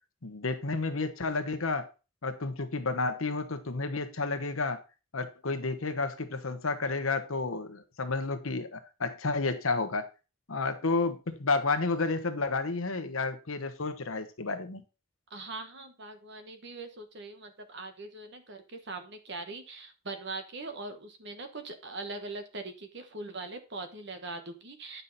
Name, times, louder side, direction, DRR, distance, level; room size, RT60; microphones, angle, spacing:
voice 1, 0.2-1.9 2.2-4.8 5.1-10.1 10.5-14.8, left 3 dB, 80° left, 1.1 m, -31 dB
voice 2, 15.3-25.0, right 3 dB, 60° right, 1.2 m, -41 dB
9.5 x 5.6 x 4.1 m
head